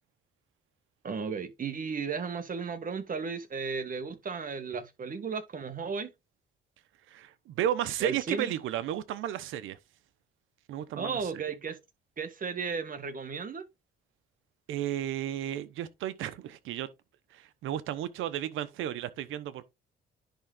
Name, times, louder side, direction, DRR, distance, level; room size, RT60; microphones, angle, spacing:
voice 1, 1.0-6.1 8.0-8.5 10.9-11.8 12.2-13.6, right 5 dB, 45° right, 1.6 m, -34 dB
voice 2, 7.1-9.8 10.7-11.4 14.7-16.9 17.3-19.7, right 11 dB, 85° right, 1.0 m, -33 dB
10.5 x 3.8 x 3.9 m
cardioid pair, 90°, 20 cm